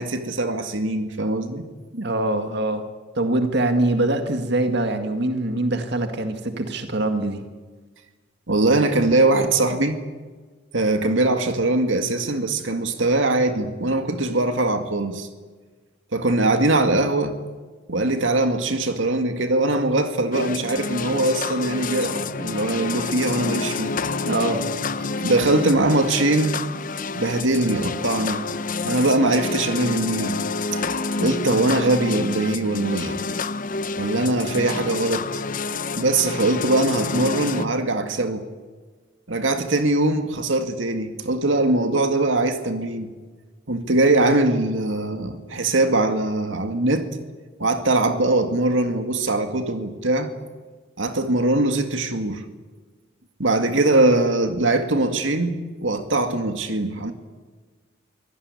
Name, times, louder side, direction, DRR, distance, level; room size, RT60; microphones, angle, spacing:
voice 1, 0.0-1.7 8.5-10.0 10.7-15.3 16.1-17.4 17.9-23.9 25.2-26.6 27.2-28.4 28.8-30.4 30.7-30.8 31.2-33.2 34.0-35.3 36.0-38.5 39.3-43.1 43.7-47.1 47.6-50.3 51.0-52.4 53.4-57.1, right 2 dB, 75° right, 2.1 m, -21 dB
voice 2, 1.9-2.8 3.2-7.4 24.2-24.6, right 2 dB, 60° right, 2.1 m, -23 dB
sound 1, 20.3-37.7, left 4 dB, 45° left, 0.8 m, -28 dB
24.0 x 17.0 x 9.8 m
head